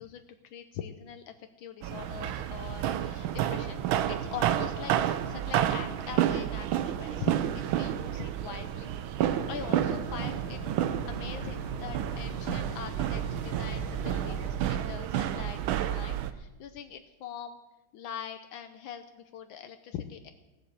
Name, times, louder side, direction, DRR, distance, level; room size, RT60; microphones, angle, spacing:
voice 1, 0.0-3.8 4.1-4.9 5.3-8.9 9.5-17.6 17.9-20.3, left 8 dB, 75° left, 8 dB, 1.4 m, -43 dB
sound 1, 1.8-16.3, right 11 dB, 85° right, 1.5 m, -30 dB
sound 2, 9.3-14.5, left 7 dB, 60° left, 0.7 m, -43 dB
16.0 x 7.2 x 8.0 m, 1.1 s
omnidirectional pair, 2.2 m